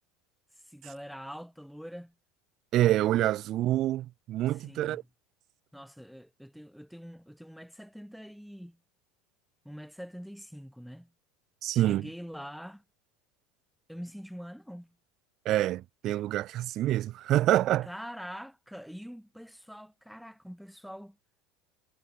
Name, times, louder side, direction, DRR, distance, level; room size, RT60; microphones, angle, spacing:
voice 1, 0.6-2.1 4.5-5.0 5.7-8.8 9.6-11.1 11.7-12.8 13.9-14.9 17.8-21.2, equal, ahead, 1.1 m, -44 dB
voice 2, 2.7-5.0 11.6-12.1 15.4-17.9, right 14 dB, 50° right, 0.6 m, -26 dB
supercardioid pair, 120°, 0 cm